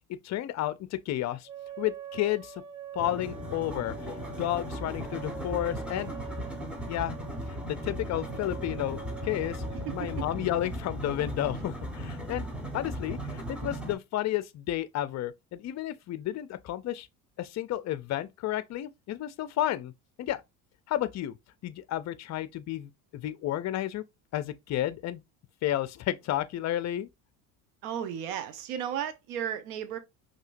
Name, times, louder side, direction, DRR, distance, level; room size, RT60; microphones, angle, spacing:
voice 1, 0.1-1.5 1.8-2.6 2.9-6.1 6.9-7.2 7.5-9.6 9.9-12.5 12.7-17.1 17.4-19.9 20.2-20.4 20.9-21.4 21.6-24.0 24.3-25.2 25.6-27.1, left 13 dB, 40° left, 0.5 m, -32 dB
sound 1, 1.5-10.4, right 6 dB, 45° right, 1.1 m, -44 dB
sound 2, 3.0-13.9, equal, ahead, 1.1 m, -37 dB
voice 2, 27.8-30.0, right 9 dB, 80° right, 1.0 m, -34 dB
5.4 x 2.9 x 2.5 m
supercardioid pair, 95°, 45 cm